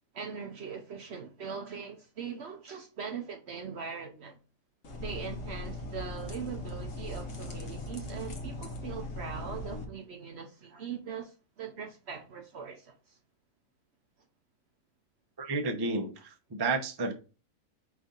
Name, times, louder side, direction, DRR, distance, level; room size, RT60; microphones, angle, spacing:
voice 1, 0.1-4.4 5.0-13.2, right 6 dB, 60° right, 0.7 m, -41 dB
sound 1, 4.8-9.8, left 1 dB, 60° left, 1.2 m, -39 dB
voice 2, 15.4-17.1, right 3 dB, 30° right, 0.4 m, -31 dB
5.1 x 2.7 x 3.7 m
omnidirectional pair, 1.5 m